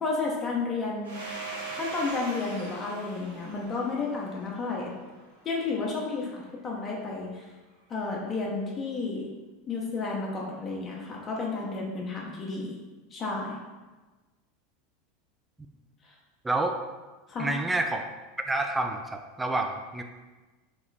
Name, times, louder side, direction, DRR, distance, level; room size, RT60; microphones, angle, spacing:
voice 1, 0.0-1.3 1.7-4.9 5.4-7.4 7.9-9.3 9.7-12.8 13.1-13.6 17.3-17.5, left 3 dB, 30° left, -3 dB, 0.7 m, -32 dB
Domestic sounds home sounds, 1.0-5.5, right 3 dB, 85° right, 0.9 m, -41 dB
voice 2, 16.4-16.8 17.4-18.0 18.5-20.0, right 2 dB, 10° right, 5 dB, 0.3 m, -28 dB
3.0 x 2.9 x 3.9 m, 1.2 s
hypercardioid pair, 90°, 0 cm